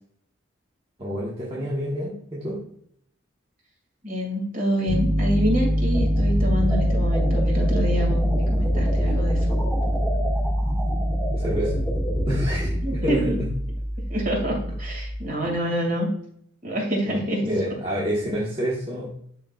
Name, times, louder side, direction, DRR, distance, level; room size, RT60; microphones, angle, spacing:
voice 1, 1.0-2.6 11.3-11.7 12.2-13.5 17.1-19.1, equal, 25° right, -6 dB, 1.2 m, -28 dB
voice 2, 4.0-9.6 12.8-13.4 14.1-16.1 16.6-17.4 17.7-17.8, equal, 45° right, -1 dB, 2.2 m, -27 dB
Piano, 4.9-15.1, equal, 70° right, 1.5 m, -24 dB
sound 1, 5.9-12.8, equal, 5° right, 1.7 m, -31 dB
11.5 x 3.9 x 2.4 m, 0.67 s
head